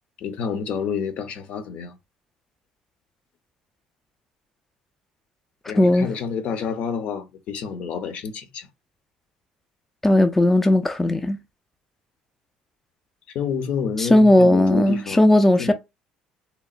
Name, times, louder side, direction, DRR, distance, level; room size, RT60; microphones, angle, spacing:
voice 1, 0.2-2.0 5.7-8.7 13.3-15.2 15.6-15.7, left 6 dB, 65° left, 0.6 m, -29 dB
voice 2, 5.8-6.1 10.0-11.4 14.0-15.7, left 1 dB, 10° left, 0.3 m, -16 dB
2.9 x 2.0 x 2.4 m
cardioid pair, 100°, 2 cm